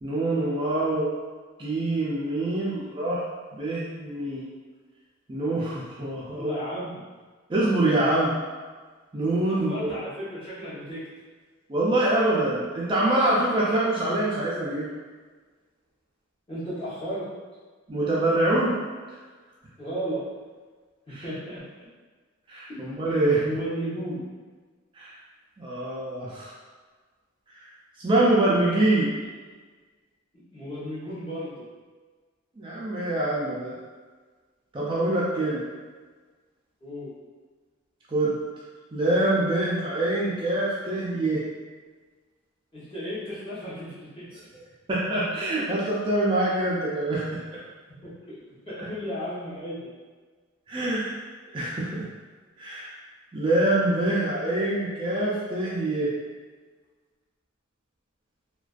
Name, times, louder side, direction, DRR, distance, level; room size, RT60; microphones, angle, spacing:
voice 1, 0.0-1.1 1.6-3.2 3.5-4.4 5.3-6.5 7.5-8.3 9.1-9.9 11.7-14.9 17.9-18.8 21.1-21.3 22.5-23.4 24.9-25.1 25.6-26.5 28.0-29.1 32.6-33.8 34.7-35.6 38.1-38.4 38.9-41.4 44.9-47.2 47.5-47.6 48.8-48.9 50.7-51.2 51.5-52.0 52.6-52.9 53.3-56.1, right 1 dB, 25° right, -7 dB, 0.3 m, -25 dB
voice 2, 6.3-7.1 9.5-11.1 16.5-17.3 19.8-20.2 21.1-21.9 22.7-22.9 23.2-24.3 30.5-31.6 36.8-37.1 42.7-44.3 48.0-48.3 48.7-49.9, equal, 25° left, -10 dB, 0.8 m, -34 dB
2.4 x 2.2 x 2.3 m, 1.4 s
head